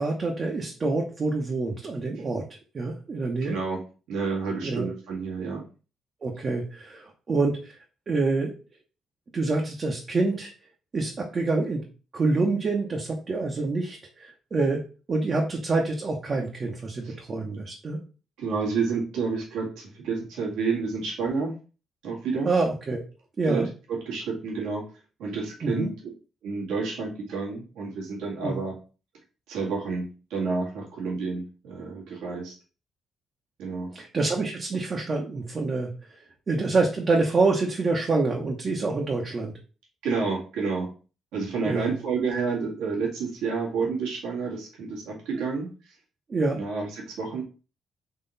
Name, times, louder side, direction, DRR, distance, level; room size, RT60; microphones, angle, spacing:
voice 1, 0.0-2.4 2.7-3.6 4.6-4.8 6.2-7.8 8.1-8.5 9.3-10.5 10.9-11.8 12.1-14.8 15.1-18.0 22.4-23.0 23.4-23.7 25.6-25.9 28.4-28.6 33.9-35.9 36.5-39.5 41.6-41.9 45.3-45.5 46.3-46.6, right 3 dB, 40° right, -1 dB, 0.9 m, -26 dB
voice 2, 3.4-3.8 4.1-5.6 17.0-17.2 18.4-21.5 22.0-22.5 23.5-23.6 23.9-24.8 25.2-25.9 26.4-28.7 29.5-32.5 33.6-33.9 40.0-40.9 41.3-45.7 46.6-47.4, right 4 dB, 90° right, -2 dB, 1.7 m, -29 dB
3.9 x 3.0 x 4.0 m, 0.35 s
cardioid pair, 90°, 0 cm